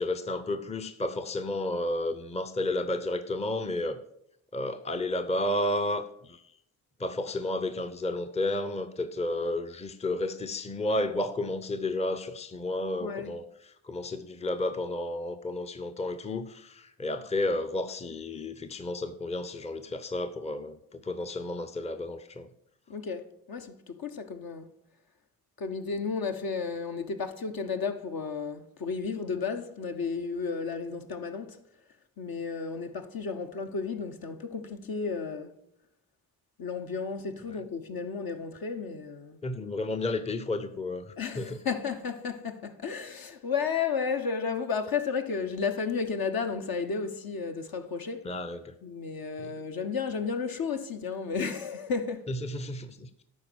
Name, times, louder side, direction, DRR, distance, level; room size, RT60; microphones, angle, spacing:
voice 1, 0.0-4.0 4.5-6.4 7.0-13.5 13.8-22.5 39.4-41.6 48.2-48.7 49.4-49.5 52.3-53.1, left 2 dB, 15° left, 0.7 m, -32 dB
voice 2, 13.0-13.4 22.9-24.7 25.6-31.6 32.2-35.6 36.6-39.4 41.2-48.3 48.8-52.2, left 5 dB, 50° left, 1.1 m, -33 dB
11.0 x 4.2 x 6.2 m
hypercardioid pair, 45°, 46 cm